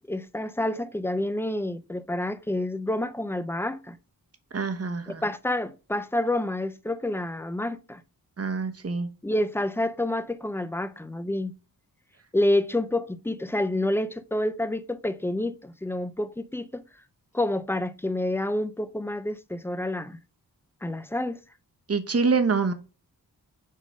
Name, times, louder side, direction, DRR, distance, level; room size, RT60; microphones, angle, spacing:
voice 1, 0.1-4.0 5.1-8.0 9.2-11.5 12.3-16.8 17.3-20.2 20.8-21.4, left 1 dB, 5° left, 0.5 m, -28 dB
voice 2, 4.5-5.2 8.4-9.1 21.9-22.7, right 4 dB, 40° right, 1.0 m, -25 dB
6.5 x 3.7 x 5.2 m
wide cardioid pair, 130°, 36 cm